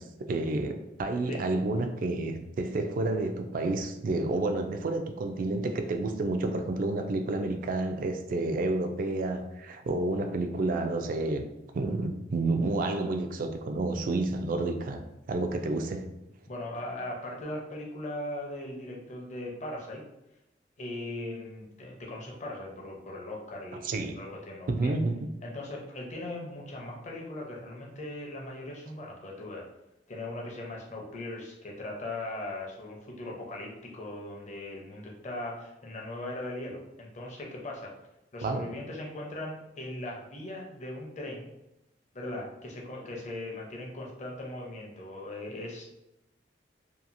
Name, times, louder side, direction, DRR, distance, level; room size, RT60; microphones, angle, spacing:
voice 1, 0.0-11.5 11.7-15.0 15.3-16.1 23.8-24.2 24.7-25.2 38.4-38.6, right 2 dB, 50° right, 7 dB, 0.3 m, -30 dB
voice 2, 16.5-20.0 20.8-25.0 25.4-29.7 30.1-37.9 38.3-41.5 42.1-45.8, left 1 dB, 40° left, -2 dB, 0.6 m, -39 dB
2.8 x 2.3 x 2.5 m, 0.90 s
head